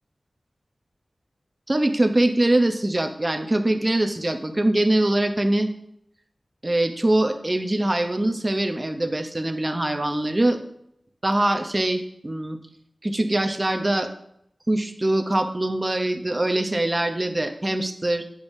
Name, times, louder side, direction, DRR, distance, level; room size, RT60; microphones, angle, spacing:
voice 1, 1.7-5.7 6.6-10.6 11.2-12.6 13.0-14.1 14.7-18.2, right 1 dB, 30° right, 6 dB, 0.7 m, -23 dB
8.9 x 5.3 x 2.6 m, 0.74 s
wide cardioid pair, 75°, 0 cm